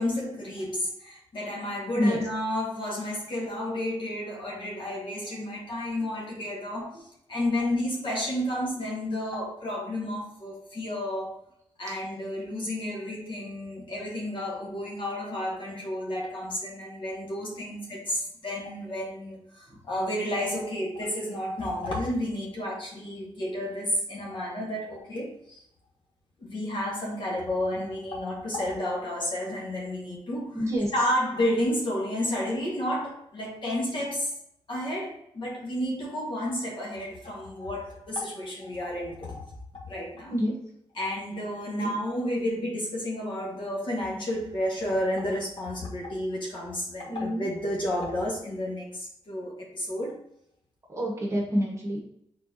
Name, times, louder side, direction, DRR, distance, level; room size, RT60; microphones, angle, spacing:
voice 1, 0.0-11.4 11.8-25.6 26.4-30.6 30.9-34.3 34.7-39.4 39.7-40.3 41.0-50.2, left 1 dB, 50° left, -2 dB, 1.3 m, -31 dB
voice 2, 1.9-2.2 6.9-7.0 19.7-19.8 30.5-30.9 40.3-40.6 41.8-41.9 47.1-47.5 50.9-52.0, equal, 30° right, -2 dB, 1.1 m, -28 dB
4.4 x 4.0 x 2.6 m, 0.73 s
wide cardioid pair, 120°, 10 cm